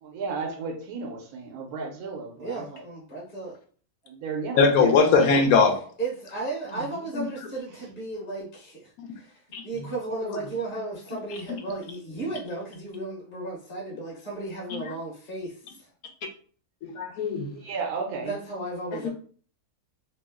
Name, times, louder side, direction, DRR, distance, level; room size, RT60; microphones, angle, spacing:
voice 1, 0.0-2.8 4.0-5.4 6.7-7.1 12.2-12.3 17.5-18.3, right 4 dB, 80° right, 2 dB, 1.2 m, -34 dB
voice 2, 2.4-3.6 6.0-15.9 18.2-19.1, right 2 dB, 40° left, -5 dB, 1.0 m, -35 dB
voice 3, 4.6-5.9 9.5-9.6 16.8-17.5 19.0-19.1, left 5 dB, 75° left, 4 dB, 1.1 m, -20 dB
3.0 x 2.0 x 3.4 m, 0.44 s
omnidirectional pair, 1.6 m